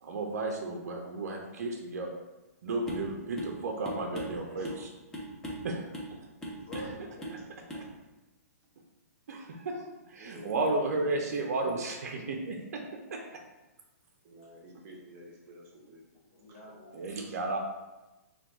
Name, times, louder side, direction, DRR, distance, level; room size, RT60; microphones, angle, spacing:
voice 1, 0.0-2.1 2.6-4.9 5.6-5.9 9.3-12.8 13.1-13.2 16.9-17.6, right 2 dB, 70° right, 1 dB, 0.5 m, -33 dB
sound 1, 2.9-3.1 3.4-3.6 3.8-4.8 5.1-5.7 5.9-6.1 6.4-6.9 7.2-7.4 7.7-7.9, equal, 5° left, 0.6 m, -38 dB
voice 2, 4.3-4.8 6.6-7.5 16.3-17.0, equal, 60° left, -5 dB, 1.1 m, -47 dB
voice 3, 10.2-11.2 14.2-16.0 16.5-16.6 17.2-17.4, right 1 dB, 30° right, -2 dB, 0.7 m, -50 dB
2.9 x 2.2 x 3.4 m, 1.1 s
hypercardioid pair, 140°, 9 cm